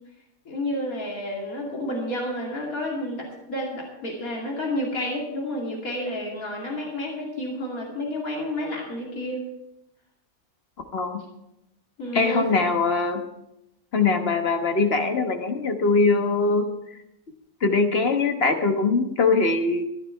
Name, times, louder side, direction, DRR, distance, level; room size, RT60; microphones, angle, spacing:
voice 1, 0.5-9.4 12.0-12.5, left 1 dB, 85° left, -2 dB, 2.9 m, -30 dB
voice 2, 12.1-13.3 13.9-17.0 17.6-19.8, left 4 dB, 50° left, 5 dB, 1.4 m, -22 dB
14.0 x 11.0 x 4.5 m, 0.88 s
omnidirectional pair, 1.5 m